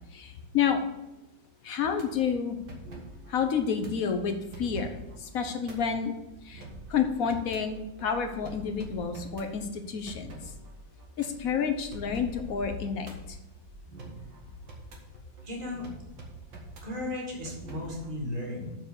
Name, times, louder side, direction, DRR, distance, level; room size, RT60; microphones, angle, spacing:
voice 1, 0.1-0.8 1.6-2.6 3.3-6.1 6.4-6.6 6.9-10.3 11.2-13.4, left 7 dB, 55° left, 7 dB, 1.0 m, -29 dB
sound 1, 1.9-18.2, right 2 dB, 60° right, 2.3 m, -47 dB
voice 2, 15.4-15.9 16.8-18.8, left 1 dB, 20° right, -2 dB, 2.3 m, -35 dB
6.9 x 6.7 x 6.9 m, 0.93 s
omnidirectional pair, 2.3 m